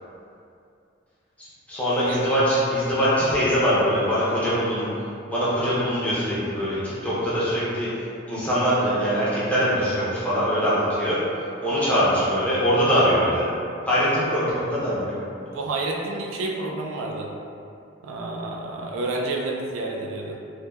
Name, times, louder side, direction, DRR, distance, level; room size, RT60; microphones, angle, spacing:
voice 1, 1.7-4.9 5.3-7.9 8.3-11.2 11.6-13.4 13.9-15.1, equal, 10° left, -10 dB, 0.5 m, -22 dB
voice 2, 15.5-17.3 18.0-20.4, right 2 dB, 90° right, -1 dB, 0.3 m, -29 dB
3.0 x 2.1 x 2.2 m, 2.5 s
head